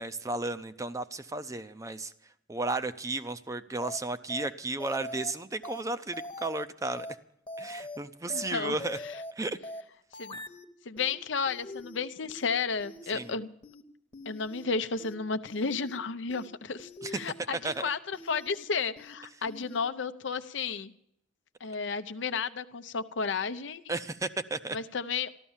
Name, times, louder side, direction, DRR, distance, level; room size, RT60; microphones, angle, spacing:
voice 1, 0.0-2.1 2.5-7.1 7.6-9.0 9.4-9.6 13.1-13.3 17.0-17.1 17.6-17.9 23.9-24.8, right 2 dB, 15° right, 11 dB, 0.5 m, -34 dB
sound 1, 3.8-4.0 4.3-4.5 4.8-5.3 5.6-5.8 6.1-6.6 7.0-7.1 7.5-8.0 8.3-8.5 8.8-9.3 9.6-9.8 10.1-10.6 11.0-11.1 11.5-12.0 12.3-12.5 12.8-13.3 13.6-13.8 14.1-14.6 15.0-15.1 15.5-16.0 16.3-16.5 16.8-17.3 17.6-17.8 18.1-18.6 19.0-19.1 19.5-19.8, left 1 dB, 30° left, 1.0 m, -43 dB
voice 2, 8.3-8.8 9.0-9.2 10.2-10.4 10.8-13.5 14.3-20.9 21.6-23.8 24.7-25.3, left 5 dB, 80° left, 11 dB, 0.7 m, -33 dB
14.0 x 12.0 x 7.2 m, 0.74 s
head